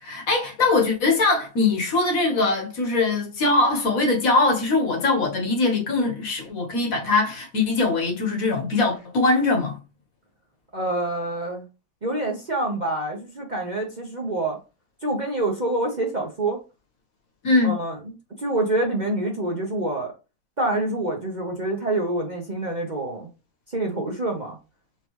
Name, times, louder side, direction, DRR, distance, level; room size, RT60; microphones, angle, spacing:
voice 1, 0.0-9.8 17.4-17.7, left 3 dB, 60° left, 1.5 m, -22 dB
voice 2, 10.7-11.6 12.0-14.6 15.0-16.6 17.6-18.0 18.4-20.1 20.6-23.3 23.7-24.6, right 2 dB, 35° right, 0.9 m, -26 dB
4.5 x 3.8 x 3.0 m
omnidirectional pair, 1.8 m